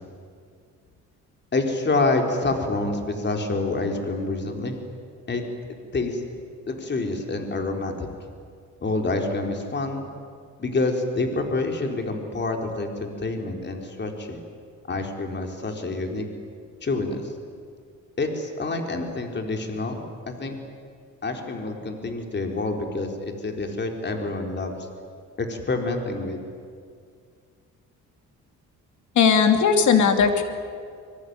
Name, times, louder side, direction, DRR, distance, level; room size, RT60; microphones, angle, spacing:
voice 1, 1.5-4.8 5.3-5.4 5.9-6.2 6.7-8.1 8.8-10.1 10.6-14.4 14.9-16.2 16.8-17.2 18.2-20.5 21.2-24.7 25.4-26.4, left 3 dB, 35° left, 3 dB, 4.3 m, -27 dB
voice 2, 29.1-30.4, left 6 dB, 70° left, 6 dB, 3.0 m, -18 dB
25.0 x 23.0 x 9.7 m, 2.2 s
cardioid pair, 90°, 30 cm